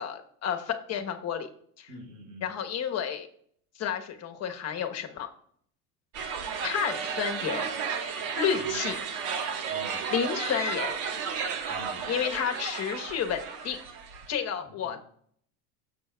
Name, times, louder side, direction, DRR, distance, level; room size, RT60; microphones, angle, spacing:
voice 1, 0.0-1.5 1.8-1.9 2.4-3.3 3.8-5.3 6.6-7.7 8.4-8.9 10.1-10.9 12.1-13.8 14.3-15.0, left 8 dB, 35° left, 5 dB, 1.1 m, -31 dB
voice 2, 1.9-2.5 8.5-8.9 9.7-10.1 11.7-12.1 14.6-15.0, equal, 30° right, -2 dB, 4.3 m, -47 dB
sound 1, 6.1-14.3, right 6 dB, 65° right, 1.5 m, -33 dB
16.5 x 6.9 x 2.3 m, 0.64 s
supercardioid pair, 125°, 45 cm